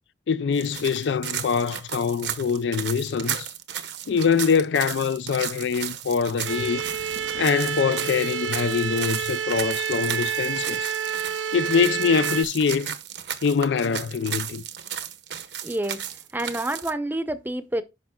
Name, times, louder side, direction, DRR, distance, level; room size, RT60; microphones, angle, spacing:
voice 1, 0.3-3.5 4.1-6.8 7.4-10.9 11.5-13.0 13.4-14.6, left 6 dB, 80° left, 0.4 m, -24 dB
sound 1, 0.5-16.9, right 9 dB, 75° right, 1.0 m, -34 dB
sound 2, 6.5-12.4, right 8 dB, 90° right, 0.5 m, -29 dB
voice 2, 15.6-16.1 16.3-17.8, right 1 dB, 10° right, 0.7 m, -28 dB
10.5 x 5.8 x 2.2 m
head